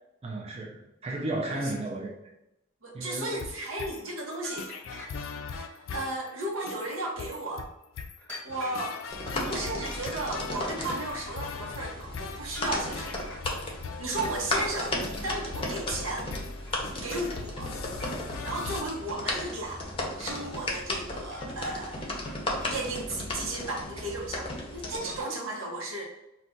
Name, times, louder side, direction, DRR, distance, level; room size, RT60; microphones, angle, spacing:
voice 1, 0.2-2.3 2.9-3.4, right 2 dB, 30° right, -2 dB, 0.4 m, -34 dB
voice 2, 2.8-4.7 5.7-7.7 8.4-9.0 9.4-13.2 14.0-16.3 17.0-17.7 18.4-19.8 20.2-22.1 22.7-26.0, right 2 dB, 85° right, -1 dB, 0.8 m, -34 dB
sound 1, 3.2-18.8, left 5 dB, 75° left, 0.4 m, -41 dB
sound 2, 4.4-5.5 8.0-9.0 11.8-11.9 12.5-13.8 15.9-16.1 16.3-17.4 18.0-18.4 18.7-19.4 19.6-20.3 21.3-21.9 22.3-22.8, left 1 dB, 10° left, 1.0 m, -47 dB
sound 3, 9.1-25.2, left 1 dB, 25° left, 0.6 m, -35 dB
2.4 x 2.2 x 3.7 m, 0.88 s
head